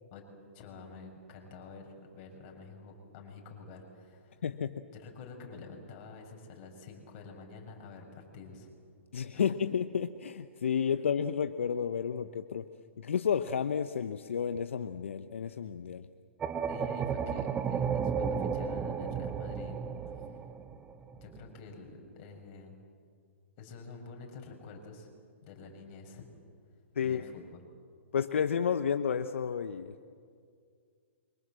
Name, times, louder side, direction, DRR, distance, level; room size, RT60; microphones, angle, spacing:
voice 1, 0.5-4.4 4.9-8.7 9.3-9.4 16.7-20.3 21.1-22.8 23.6-25.1 25.4-26.3 27.0-27.6, left 4 dB, 35° left, 2 dB, 6.5 m, -49 dB
voice 2, 4.4-4.7 9.1-12.7 13.0-16.1 27.0-27.3 28.1-30.0, left 7 dB, 70° left, 10 dB, 1.0 m, -31 dB
sound 1, 16.4-21.4, right 6 dB, 15° right, 1.2 m, -33 dB
28.5 x 24.5 x 7.5 m, 2.2 s
hypercardioid pair, 125°, 7 cm